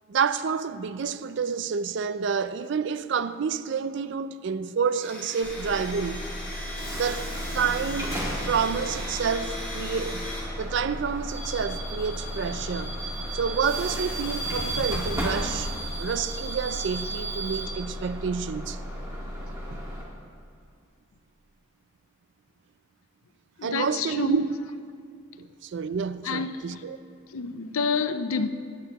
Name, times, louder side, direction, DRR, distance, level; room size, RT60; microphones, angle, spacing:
voice 1, 0.1-6.3 7.0-7.3 7.5-8.1 8.5-10.3 10.6-13.0 13.3-15.7 16.0-18.8 19.7-19.8 23.6-24.5 25.4-27.0, right 6 dB, 55° right, 0.4 m, -29 dB
Domestic sounds home sounds, 4.9-10.4, left 1 dB, 10° left, 2.4 m, -38 dB
Bus / Alarm, 5.4-20.0, right 1 dB, 15° right, 1.8 m, -33 dB
voice 2, 23.6-24.4 26.2-26.8 27.3-28.5, left 5 dB, 85° left, 0.5 m, -28 dB
15.5 x 10.5 x 3.0 m
head